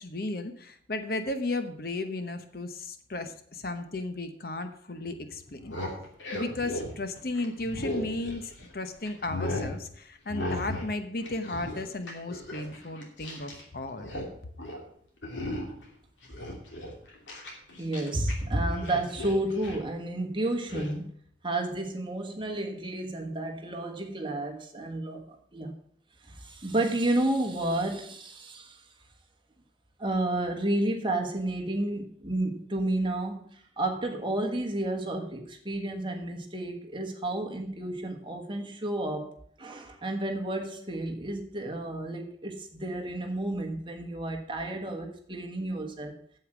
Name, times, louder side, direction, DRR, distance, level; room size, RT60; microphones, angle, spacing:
voice 1, 0.0-5.8 6.3-14.1, left 2 dB, 50° left, 8 dB, 0.9 m, -34 dB
sound 1, 5.5-8.7 9.1-9.7 10.3-10.9 11.2-13.6 13.9-14.3 14.6-14.8 15.2-15.8 16.2-18.3 18.6-19.9 20.7-20.9, left 1 dB, 80° left, 2.8 m, -36 dB
voice 2, 17.8-21.1 21.4-25.7 26.2-28.8 30.0-39.3 39.6-46.1, right 1 dB, 25° right, 3 dB, 1.4 m, -31 dB
8.3 x 7.8 x 6.1 m, 0.64 s
head